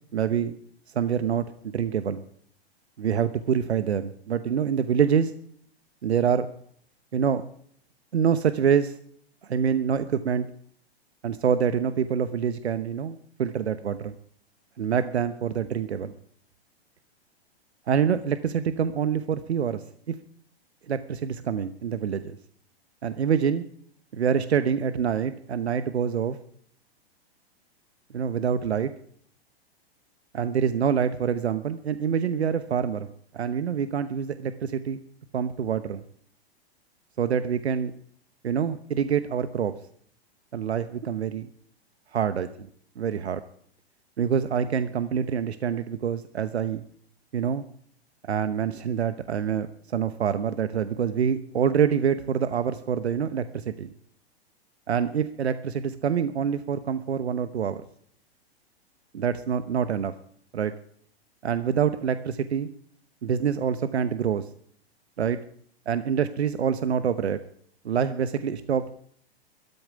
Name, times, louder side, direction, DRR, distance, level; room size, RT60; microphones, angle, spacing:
voice 1, 0.1-0.6 0.9-2.2 3.0-5.3 6.0-6.5 7.1-7.4 8.1-9.0 9.4-10.5 11.2-14.2 14.8-16.1 17.9-19.8 20.1-20.2 20.9-22.4 23.0-23.6 24.1-26.4 28.1-28.9 30.3-33.1 33.3-35.0 35.3-36.0 37.2-37.9 38.4-39.7 40.5-41.5 42.1-42.5 43.0-43.4 44.2-46.8 47.3-47.6 48.3-53.9 54.9-57.8 59.1-60.1 60.5-60.7 61.4-62.7 63.2-64.5 65.2-65.4 65.9-67.4 67.8-68.9, right 7 dB, 85° right, 11 dB, 1.0 m, -26 dB
13.5 x 9.2 x 10.0 m, 0.64 s
hypercardioid pair, 120°, 32 cm